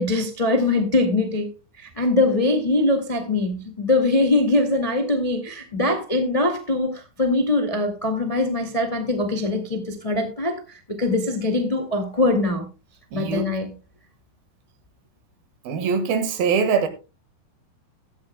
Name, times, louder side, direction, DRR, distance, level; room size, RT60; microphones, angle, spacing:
voice 1, 0.0-1.5 1.8-10.6 10.9-12.7 13.1-13.7, left 2 dB, 20° left, 1.0 m, -22 dB
voice 2, 13.1-13.5 15.6-16.9, right 6 dB, 70° right, 3.4 m, -22 dB
16.0 x 13.0 x 2.2 m
omnidirectional pair, 4.5 m